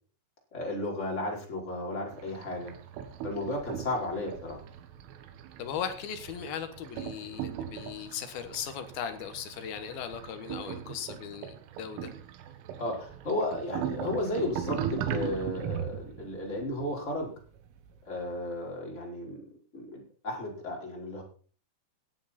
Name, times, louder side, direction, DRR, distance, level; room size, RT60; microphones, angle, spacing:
voice 1, 0.5-2.7 3.2-4.6 12.8-17.3 18.0-19.4 19.7-21.2, left 1 dB, 15° left, -1 dB, 4.3 m, -34 dB
sound 1, 2.1-18.2, right 9 dB, 80° right, 3.8 m, -39 dB
voice 2, 5.6-12.1, left 8 dB, 65° left, 8 dB, 2.5 m, -38 dB
17.5 x 11.5 x 4.4 m, 0.40 s
omnidirectional pair, 5.9 m